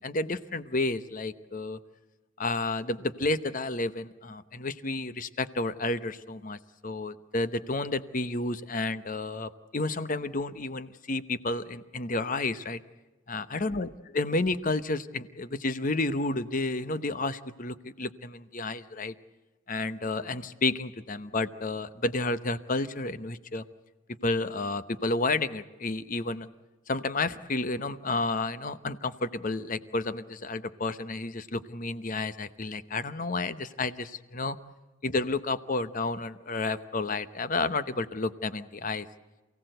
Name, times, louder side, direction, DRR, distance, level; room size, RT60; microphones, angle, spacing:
voice 1, 0.0-1.8 2.4-12.8 13.3-19.1 19.7-23.6 24.2-26.5 26.9-34.6 35.0-39.1, left 2 dB, 40° left, 13 dB, 0.9 m, -31 dB
28.5 x 17.0 x 7.9 m, 1.1 s
head